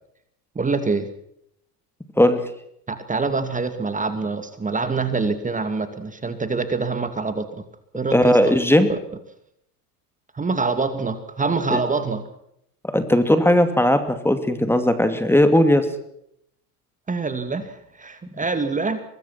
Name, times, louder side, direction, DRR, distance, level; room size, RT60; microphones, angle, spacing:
voice 1, 0.5-1.1 2.9-7.6 7.9-8.6 8.9-9.0 10.3-12.3 17.1-19.0, right 4 dB, 15° right, 9 dB, 2.5 m, -25 dB
voice 2, 8.1-8.9 11.7-11.8 12.9-15.9, left 1 dB, 5° left, 9 dB, 2.6 m, -17 dB
24.5 x 20.5 x 6.0 m, 0.74 s
hypercardioid pair, 85°, 46 cm